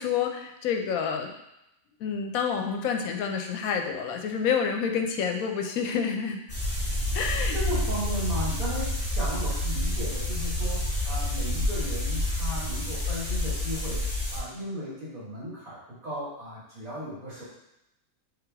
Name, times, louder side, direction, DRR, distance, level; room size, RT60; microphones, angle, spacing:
voice 1, 0.0-1.3 2.0-6.4 7.1-7.6, left 6 dB, 75° left, 4 dB, 1.0 m, -28 dB
sound 1, 6.5-14.4, left 1 dB, 10° left, 1.5 m, -28 dB
voice 2, 7.5-14.0 14.3-17.4, equal, 70° right, -8 dB, 2.1 m, -35 dB
3.6 x 3.2 x 3.4 m, 0.87 s
omnidirectional pair, 1.5 m